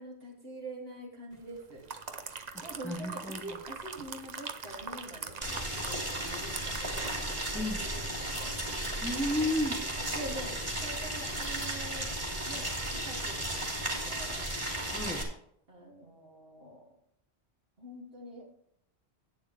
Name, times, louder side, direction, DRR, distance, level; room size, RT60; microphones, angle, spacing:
voice 1, 0.0-1.8 2.6-8.5 10.1-12.1 12.5-13.6 14.0-14.5 15.7-16.8 17.8-18.5, right 1 dB, 60° right, 2.9 m, -45 dB
sound 1, 1.6-7.6 7.9-8.1, right 5 dB, 45° right, 0.9 m, -43 dB
voice 2, 2.6-3.6 7.5-7.8 9.0-9.9 14.9-15.3, left 1 dB, ahead, 0.8 m, -33 dB
Boiling, 5.4-15.2, right 1 dB, 30° right, 2.7 m, -35 dB
11.0 x 9.0 x 3.4 m
omnidirectional pair, 1.1 m